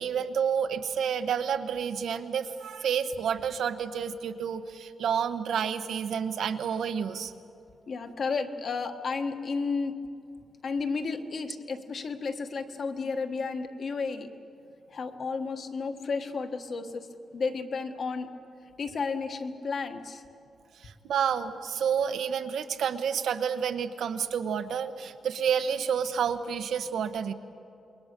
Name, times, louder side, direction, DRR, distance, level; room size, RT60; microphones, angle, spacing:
voice 1, 0.0-7.3 20.8-27.3, right 7 dB, 80° right, 8 dB, 1.1 m, -29 dB
voice 2, 7.9-9.9 10.6-14.3 14.9-17.1 17.3-18.3 18.8-20.2, left 4 dB, 45° left, 5 dB, 1.4 m, -32 dB
28.0 x 22.0 x 6.8 m, 2.6 s
wide cardioid pair, 180°, 0 cm